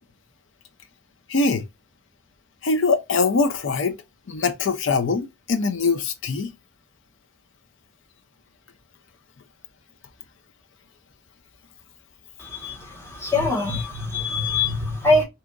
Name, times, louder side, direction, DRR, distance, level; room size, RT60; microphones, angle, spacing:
voice 1, 1.3-1.7 2.6-4.0 4.3-6.5, left 4 dB, 55° left, 0.5 m, -22 dB
voice 2, 12.4-15.2, left 2 dB, 10° left, 0.9 m, -23 dB
2.7 x 2.4 x 3.7 m
head